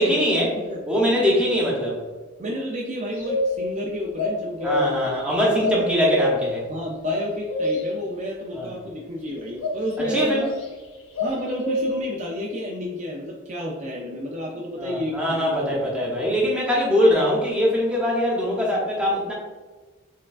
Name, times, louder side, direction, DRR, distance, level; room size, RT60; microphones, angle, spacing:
voice 1, 0.0-0.5 0.9-2.0 4.6-6.7 8.5-8.7 10.0-10.5 14.8-19.3, equal, 5° right, -4 dB, 0.9 m, -22 dB
voice 2, 0.6-1.4 2.4-5.2 5.5-5.9 6.7-10.6 11.2-16.2, equal, 35° right, -1 dB, 0.4 m, -31 dB
sound 1, 3.1-3.8 4.2-5.1 5.6-6.5 7.0-8.0 9.6-10.6 11.1-12.1, left 2 dB, 85° left, 0.9 m, -25 dB
4.4 x 3.5 x 2.4 m, 1.4 s
head